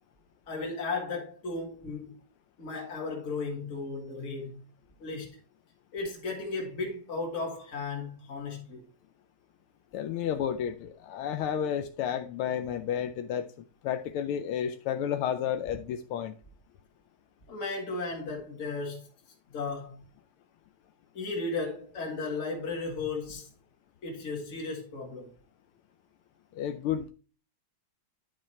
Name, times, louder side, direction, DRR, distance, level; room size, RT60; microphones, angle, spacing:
voice 1, 0.5-2.1 2.6-4.6 5.0-5.3 5.9-8.8 17.5-19.1 19.5-20.0 21.1-23.5 24.0-25.3, left 3 dB, 35° left, 2.1 m, -35 dB
voice 2, 9.9-13.5 13.8-16.4 26.5-27.1, left 9 dB, 85° left, 1.5 m, -31 dB
10.0 x 4.9 x 4.4 m
omnidirectional pair, 2.3 m